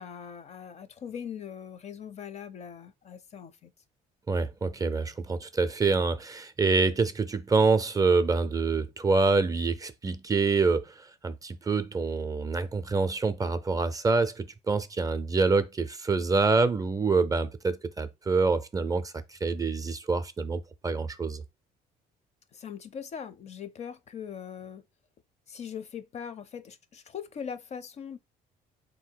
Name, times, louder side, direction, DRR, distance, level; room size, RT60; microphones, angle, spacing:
voice 1, 0.0-3.7 22.5-24.8 25.5-28.2, left 7 dB, 40° left, 0.5 m, -41 dB
voice 2, 4.3-21.4, right 4 dB, 20° right, 0.4 m, -26 dB
3.5 x 2.7 x 4.5 m
cardioid pair, 110°, 17 cm